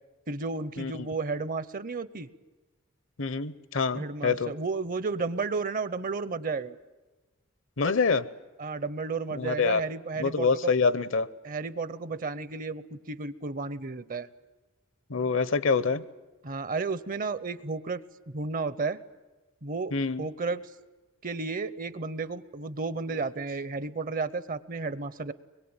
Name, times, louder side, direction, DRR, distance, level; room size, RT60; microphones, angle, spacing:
voice 1, 0.3-2.3 3.9-6.8 8.6-10.7 11.4-14.3 16.4-18.0 18.3-19.0 19.6-20.6 21.2-25.3, right 4 dB, 40° right, 16 dB, 0.8 m, -32 dB
voice 2, 3.2-4.5 7.8-8.3 9.3-9.8 10.2-11.3 15.1-16.0 19.9-20.3, left 4 dB, 65° left, 17 dB, 0.8 m, -26 dB
24.0 x 22.0 x 8.9 m, 1.2 s
head